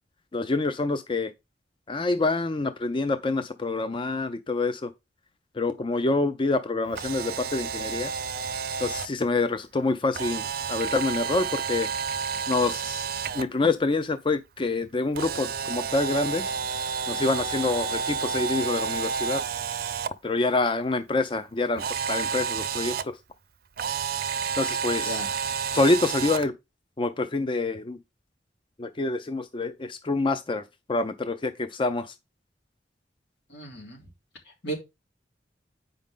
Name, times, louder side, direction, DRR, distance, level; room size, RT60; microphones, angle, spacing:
voice 1, 0.3-1.3 1.9-4.9 5.5-8.1 8.8-11.9 12.5-13.0 13.3-16.5 17.1-19.4 20.2-23.2 24.6-25.2 25.7-26.5 27.0-28.0 28.8-30.6 30.9-32.1, left 3 dB, 30° left, 0.5 m, -26 dB
Camera, 6.9-9.1 10.1-13.4 15.1-20.1 21.8-23.0 23.8-26.5, right 6 dB, 60° right, 0.6 m, -30 dB
voice 2, 33.5-34.0 34.6-34.7, right 2 dB, 85° left, 3.2 m, -34 dB
8.2 x 5.3 x 3.7 m
head